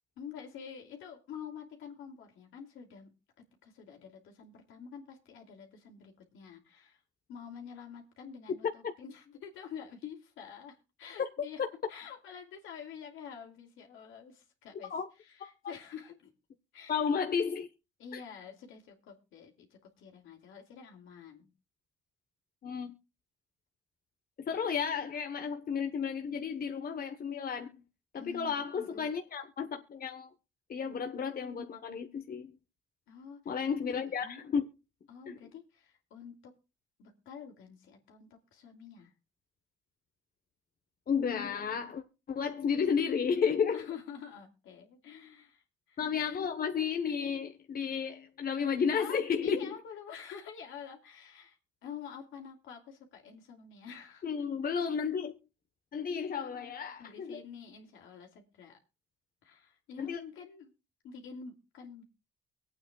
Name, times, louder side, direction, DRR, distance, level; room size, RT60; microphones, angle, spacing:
voice 1, 0.2-3.1 3.6-7.0 7.3-11.6 11.9-14.9 15.2-16.3 16.7-17.0 18.0-21.5 28.1-29.1 33.1-33.6 34.1-34.4 35.1-36.5 37.0-39.1 43.7-46.0 48.9-51.6 51.8-54.3 57.0-58.8 59.4-60.7 61.0-62.0, left 7 dB, 85° left, 2.8 m, -48 dB
voice 2, 16.9-17.7 18.1-18.2 22.6-22.9 24.4-27.7 28.1-30.3 30.7-32.6 33.5-34.6 35.3-35.4 41.1-43.8 46.0-49.7 54.2-55.3 55.9-57.4 60.0-60.2, left 6 dB, 50° left, 1.2 m, -32 dB
23.5 x 8.8 x 2.4 m
cardioid pair, 90°, 20 cm